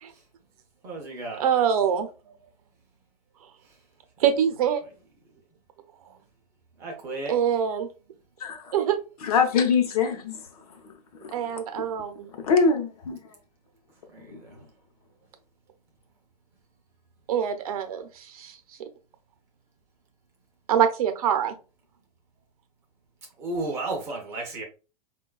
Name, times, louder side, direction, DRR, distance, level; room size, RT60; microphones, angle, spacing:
voice 1, 0.8-1.4 3.6-3.8 6.8-7.4 14.1-14.6 23.4-24.6, right 2 dB, 15° right, 0.4 m, -34 dB
voice 2, 1.4-2.1 4.2-4.8 7.3-7.9 8.7-9.0 11.3-12.3 17.3-18.6 20.7-21.6, right 8 dB, 65° right, 0.6 m, -24 dB
voice 3, 9.2-10.4 11.2-11.3 11.7-11.8 12.3-13.2, left 5 dB, 65° left, 0.8 m, -23 dB
4.4 x 2.2 x 2.3 m
supercardioid pair, 175°, 20 cm